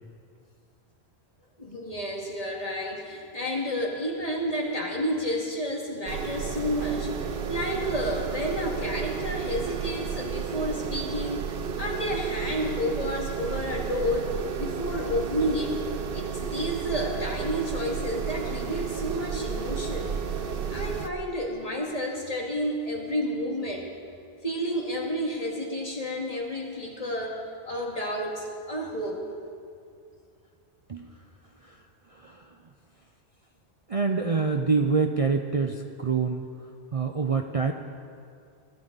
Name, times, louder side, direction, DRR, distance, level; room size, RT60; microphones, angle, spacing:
voice 1, 1.6-11.5 11.8-15.7 16.1-20.1 20.7-23.9 24.4-27.4 27.7-29.2, equal, 35° left, -1 dB, 2.3 m, -30 dB
sound 1, 6.1-21.1, right 7 dB, 60° right, 0.9 m, -32 dB
voice 2, 30.9-31.2 31.6-31.8 32.1-32.5 33.9-36.5 36.9-37.7, right 4 dB, 40° right, 4 dB, 0.7 m, -26 dB
24.0 x 13.5 x 4.1 m, 2.3 s
omnidirectional pair, 1.1 m